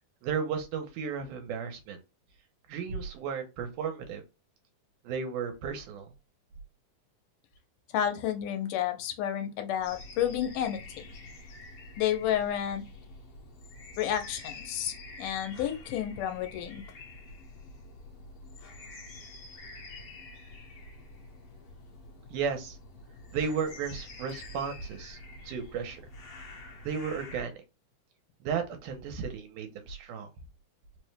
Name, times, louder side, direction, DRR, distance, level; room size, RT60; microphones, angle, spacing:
voice 1, 0.2-2.0 2.7-4.2 5.0-6.1 22.3-22.8 23.3-25.2 25.5-26.0 26.9-27.6 28.4-30.3, right 6 dB, 80° right, 2.3 m, -34 dB
voice 2, 7.9-10.8 12.0-12.8 14.0-16.8, left 10 dB, 85° left, 2.2 m, -30 dB
sound 1, 9.8-27.4, left 2 dB, 60° left, 1.7 m, -47 dB
5.1 x 2.1 x 3.2 m
omnidirectional pair, 3.7 m